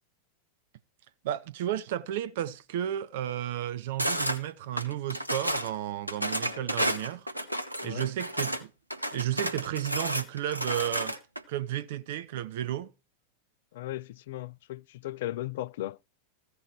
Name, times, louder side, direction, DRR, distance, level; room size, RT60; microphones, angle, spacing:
voice 1, 1.2-7.3 7.8-8.7 9.1-11.1 11.5-12.9, right 12 dB, 55° right, 0.7 m, -33 dB
sound 1, 4.0-4.4 4.8-5.7 6.1-8.6 8.9-11.4, equal, 85° right, 1.2 m, -31 dB
voice 2, 13.7-16.0, left 15 dB, 55° left, 0.5 m, -37 dB
15.5 x 5.2 x 4.6 m
figure-of-eight pair, 90°, 0 cm